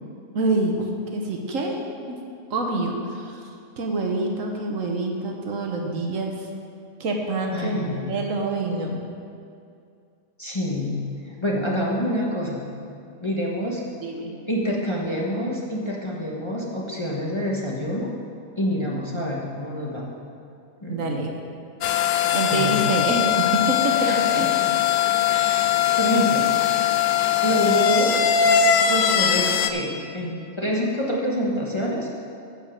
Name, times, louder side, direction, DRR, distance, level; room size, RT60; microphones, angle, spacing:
voice 1, 0.3-1.8 2.1-2.2 2.5-3.4 3.8-6.3 7.0-9.0 14.0-14.4 20.9-21.4 22.1-24.5, right 2 dB, 65° right, 1 dB, 1.4 m, -26 dB
voice 2, 7.5-8.1 10.4-12.6 13.2-13.9 14.5-18.1 18.6-20.0 20.8-21.0 22.5-22.8 24.0-24.2 24.6-24.7 25.3-25.7 26.0-26.5 27.4-28.2 28.9-32.2, equal, 20° left, -4 dB, 1.1 m, -27 dB
sound 1, 21.8-29.7, left 9 dB, 70° left, 1.0 m, -21 dB
10.0 x 5.4 x 7.3 m, 2.4 s
omnidirectional pair, 1.5 m